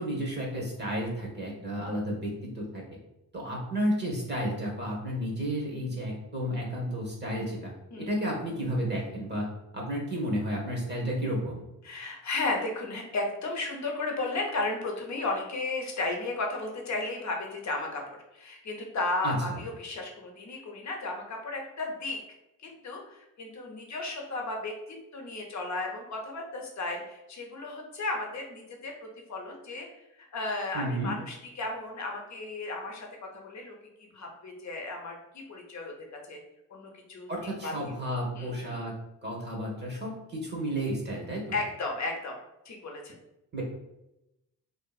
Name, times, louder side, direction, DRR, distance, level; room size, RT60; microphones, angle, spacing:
voice 1, 0.0-2.8 3.3-9.5 9.7-11.6 19.2-19.6 30.7-31.1 37.3-38.9 39.2-41.4 43.5-43.6, equal, 25° right, -1 dB, 0.9 m, -32 dB
voice 2, 11.8-18.0 18.3-22.2 22.8-24.7 25.1-29.9 30.2-33.7 34.1-35.9 36.3-36.4 36.7-37.3 37.6-38.0 38.3-38.8 41.5-42.3 42.6-43.1, left 2 dB, 45° left, 1 dB, 0.7 m, -34 dB
2.5 x 2.5 x 2.3 m, 0.89 s
cardioid pair, 70°, 38 cm